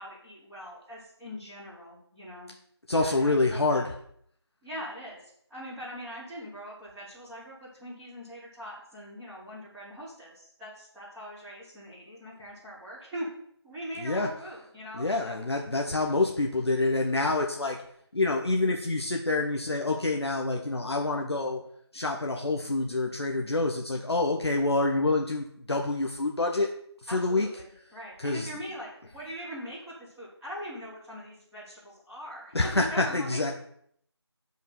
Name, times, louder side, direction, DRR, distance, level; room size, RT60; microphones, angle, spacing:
voice 1, 0.0-2.5 3.0-3.9 4.6-5.2 5.5-13.3 13.6-15.4 27.1-33.5, equal, ahead, -19 dB, 0.9 m, -41 dB
voice 2, 2.9-3.9 14.0-14.3 14.9-17.8 18.1-21.6 21.9-26.7 27.0-27.5 28.2-28.5 32.5-33.5, left 2 dB, 65° left, 1 dB, 1.4 m, -27 dB
9.1 x 5.4 x 6.1 m, 0.67 s
figure-of-eight pair, 175°, 14 cm